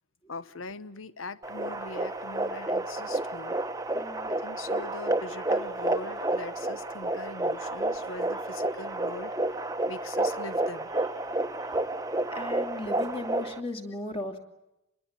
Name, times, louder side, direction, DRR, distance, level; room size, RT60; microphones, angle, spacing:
voice 1, 0.3-3.6 4.3-11.1, left 3 dB, 80° left, 1.1 m, -42 dB
sound 1, 1.4-13.6, right 2 dB, 15° right, 0.9 m, -30 dB
voice 2, 3.9-4.3 12.3-14.4, left 1 dB, 30° left, 2.8 m, -36 dB
26.5 x 22.0 x 8.8 m
head